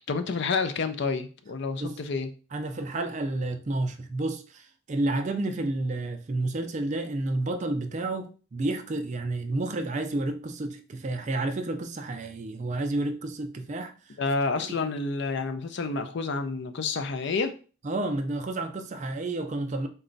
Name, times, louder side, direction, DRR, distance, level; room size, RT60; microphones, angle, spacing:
voice 1, 0.1-2.3 14.2-17.5, left 4 dB, 55° left, 0.4 m, -29 dB
voice 2, 2.5-14.2 14.6-14.9 17.8-19.9, right 2 dB, 35° right, 0.4 m, -30 dB
4.0 x 2.2 x 3.8 m
head